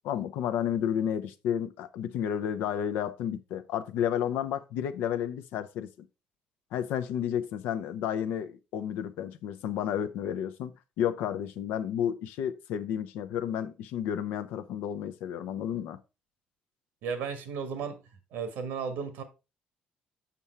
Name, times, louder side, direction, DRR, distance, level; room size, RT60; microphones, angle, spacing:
voice 1, 0.0-6.1 6.7-16.0, left 9 dB, 85° left, 0.7 m, -31 dB
voice 2, 17.0-18.0 18.3-19.2, right 6 dB, 85° right, 1.5 m, -34 dB
7.0 x 5.9 x 3.3 m
cardioid pair, 85°, 3 cm